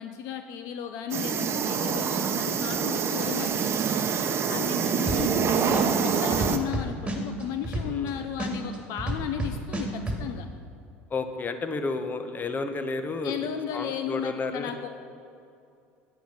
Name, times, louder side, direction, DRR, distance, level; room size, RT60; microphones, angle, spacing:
voice 1, 0.0-3.7 4.5-10.5 13.2-14.9, left 9 dB, 60° left, 8 dB, 0.6 m, -35 dB
sound 1, 1.1-6.6, right 6 dB, 40° right, 0.9 m, -26 dB
voice 2, 4.5-4.9 7.9-8.3 11.1-13.5 13.7-14.7, left 3 dB, 25° left, 8 dB, 1.0 m, -32 dB
sound 2, 5.1-5.4 5.7-8.1 8.4-10.2, right 1 dB, 15° right, 2.3 m, -30 dB
9.1 x 8.8 x 5.8 m, 2.5 s
hypercardioid pair, 80°, 7 cm